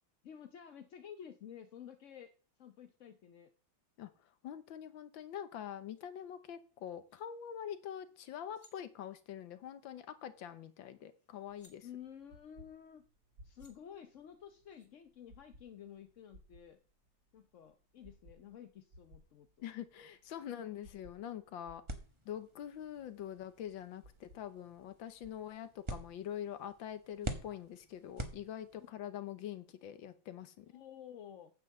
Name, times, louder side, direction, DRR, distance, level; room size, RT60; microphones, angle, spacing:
voice 1, 0.2-2.3 2.6-3.5 11.8-13.0 13.4-16.8 17.3-19.5 30.7-31.5, left 9 dB, 55° left, 7 dB, 0.8 m, -52 dB
voice 2, 4.0-11.9 19.6-21.8 22.2-30.8, left 10 dB, 80° left, 12 dB, 1.6 m, -45 dB
sound 1, 5.9-6.0 6.9-7.2 8.2-8.3 8.4-8.8 10.7-10.8 11.1-11.8 13.1-13.2 13.5-13.7 14.7-14.9, left 3 dB, 20° left, 1.7 m, -66 dB
sound 2, 11.5-25.5, equal, 65° right, 3.0 m, -62 dB
sound 3, 21.9-29.0, right 2 dB, 20° right, 0.9 m, -47 dB
9.4 x 5.7 x 7.5 m, 0.37 s
omnidirectional pair, 2.1 m